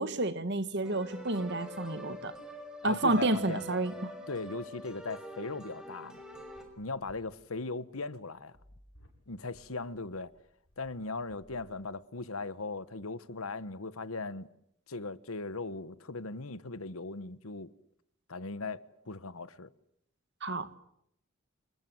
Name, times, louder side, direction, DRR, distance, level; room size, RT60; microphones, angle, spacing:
voice 1, 0.0-2.3 2.8-3.9 20.4-20.8, right 2 dB, 55° right, 1.8 m, -30 dB
sound 1, 0.8-6.6, right 1 dB, 5° right, 5.7 m, -45 dB
voice 2, 2.8-3.9 4.3-6.2 6.8-8.5 9.3-10.3 10.8-14.5 14.9-17.7 18.3-18.8 19.1-19.7, left 3 dB, 85° left, 1.3 m, -38 dB
sound 2, 6.1-12.2, equal, 65° left, 7.5 m, -61 dB
28.5 x 21.5 x 7.9 m
head